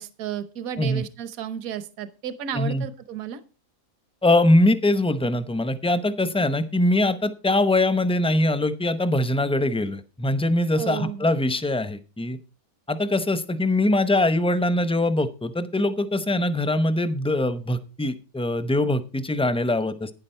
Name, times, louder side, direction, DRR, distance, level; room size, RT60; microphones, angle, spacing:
voice 1, 0.0-3.4 10.8-11.3, right 9 dB, 70° right, 13 dB, 1.4 m, -33 dB
voice 2, 2.5-2.9 4.2-12.4 12.9-20.1, left 1 dB, 5° left, 12 dB, 0.4 m, -22 dB
11.5 x 9.8 x 4.4 m, 0.32 s
omnidirectional pair, 1.6 m